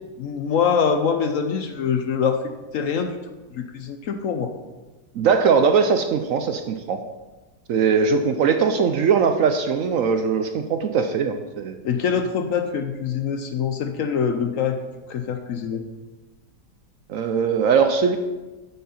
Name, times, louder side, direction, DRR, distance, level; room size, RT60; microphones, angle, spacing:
voice 1, 0.2-2.4 2.7-3.2 3.5-4.5 11.8-14.8 15.1-15.8, left 6 dB, 65° left, 7 dB, 0.9 m, -24 dB
voice 2, 5.1-7.0 7.7-11.7 17.1-18.2, right 6 dB, 65° right, 7 dB, 0.9 m, -20 dB
9.2 x 7.5 x 4.3 m, 1.2 s
omnidirectional pair, 1.8 m